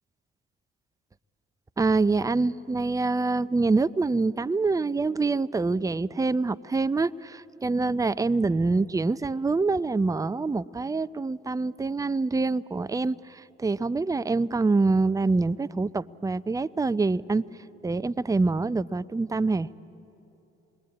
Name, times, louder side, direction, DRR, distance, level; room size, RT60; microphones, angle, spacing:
voice 1, 1.8-17.4 17.8-19.7, right 3 dB, 10° right, 16 dB, 0.5 m, -25 dB
27.5 x 21.5 x 8.5 m, 2.9 s
hypercardioid pair, 45°, 32 cm